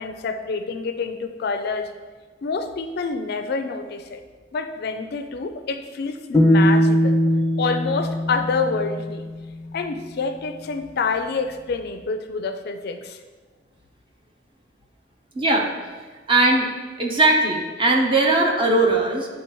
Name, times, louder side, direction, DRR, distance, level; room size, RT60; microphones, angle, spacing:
voice 1, 0.0-1.9 2.4-4.2 4.5-7.2 7.6-9.3 9.7-13.2, left 4 dB, 55° left, 7 dB, 0.4 m, -27 dB
sound 1, 6.3-9.5, equal, 20° left, 0.6 m, -20 dB
voice 2, 15.3-15.7 16.3-16.7 17.0-19.3, right 2 dB, 30° right, 0 dB, 0.8 m, -19 dB
9.4 x 3.7 x 3.1 m, 1.4 s
head